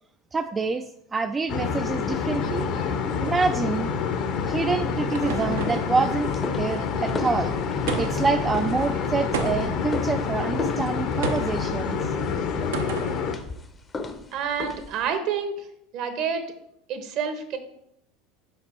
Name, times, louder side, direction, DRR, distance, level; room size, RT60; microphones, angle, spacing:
voice 1, 0.3-2.7 3.2-3.9 4.4-6.3 6.6-7.6 8.0-12.2, right 4 dB, 20° right, 7 dB, 0.3 m, -27 dB
sound 1, 1.5-13.3, left 6 dB, 55° left, 0.8 m, -27 dB
sound 2, 4.4-6.0 7.9-8.4 9.3-9.9 11.2-11.6 12.7-13.2, right 5 dB, 80° right, 0.8 m, -31 dB
sound 3, 5.4-15.1, left 3 dB, 25° left, 0.7 m, -36 dB
voice 2, 14.3-15.7 15.9-16.4 16.9-17.6, right 7 dB, 55° right, 7 dB, 1.0 m, -28 dB
5.2 x 5.2 x 4.4 m, 0.76 s
hypercardioid pair, 90°, 0 cm